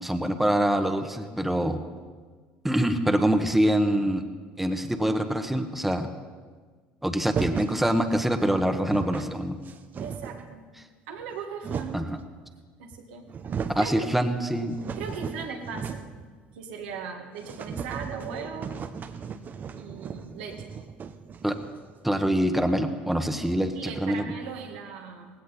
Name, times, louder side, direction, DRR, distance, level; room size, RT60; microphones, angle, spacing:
voice 1, 0.0-1.8 2.6-4.2 4.6-6.1 7.0-9.6 11.9-12.2 13.7-14.8 21.4-21.6 22.0-24.2, right 1 dB, 5° right, 6 dB, 1.2 m, -25 dB
sound 1, 7.3-7.8 8.5-8.6 8.7-9.3 9.7-10.5 11.2-12.2 12.9-13.0 13.3-13.9 14.3-16.2 16.5-16.6 16.9-17.0 17.4-21.9, right 6 dB, 40° right, 0.9 m, -36 dB
voice 2, 10.0-10.6 11.1-12.0 12.8-13.3 13.8-13.9 15.0-16.1 16.5-18.8 19.8-20.7 23.7-25.3, right 6 dB, 85° right, 1 dB, 1.9 m, -38 dB
18.0 x 16.5 x 4.2 m, 1.5 s
hypercardioid pair, 75°, 5 cm